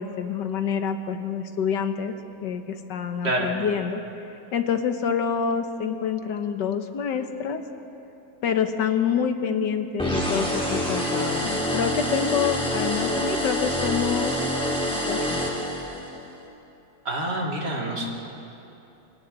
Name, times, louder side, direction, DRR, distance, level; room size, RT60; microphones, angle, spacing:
voice 1, 0.0-2.1 2.4-4.0 4.5-7.6 8.4-14.4 15.1-15.5, left 7 dB, 80° left, 7 dB, 1.7 m, -27 dB
sound 1, 10.0-16.2, equal, 5° left, 3.4 m, -26 dB
voice 2, 17.0-18.1, right 1 dB, 70° right, -1 dB, 3.3 m, -27 dB
28.5 x 25.5 x 4.0 m, 2.9 s
omnidirectional pair, 1.9 m